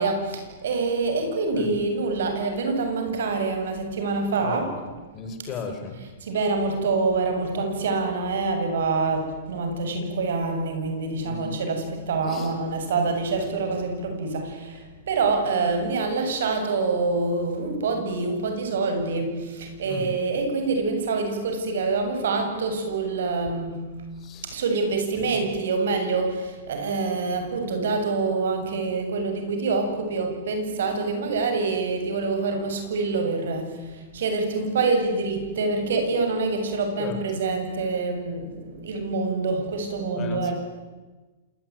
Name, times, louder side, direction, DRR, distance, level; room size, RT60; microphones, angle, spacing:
voice 1, 0.0-4.7 6.2-23.8 24.4-40.5, right 3 dB, 75° right, 5 dB, 7.4 m, -26 dB
voice 2, 4.4-4.9 5.1-6.0 11.2-11.6 12.3-12.5 19.9-20.1 24.2-24.4 37.0-37.2 40.1-40.5, left 5 dB, 30° left, 6 dB, 5.4 m, -35 dB
27.0 x 19.5 x 9.6 m, 1.3 s
hypercardioid pair, 140°, 0 cm